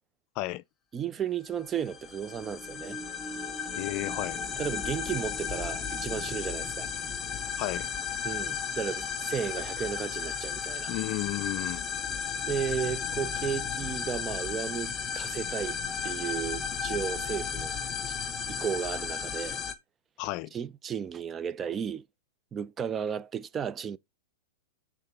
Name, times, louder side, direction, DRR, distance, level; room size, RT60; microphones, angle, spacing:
voice 1, 0.9-3.0 4.6-6.9 8.2-10.9 12.5-15.8 16.0-17.8 18.1-18.2 18.5-19.6 20.5-22.1 22.5-24.0, right 8 dB, 25° right, 0.5 m, -34 dB
sound 1, 1.7-19.7, left 7 dB, 25° left, 1.1 m, -34 dB
voice 2, 3.8-4.4 7.6-7.9 10.9-11.9 20.2-20.5, left 18 dB, 50° left, 0.4 m, -33 dB
6.6 x 3.6 x 5.9 m
hypercardioid pair, 115°, 0 cm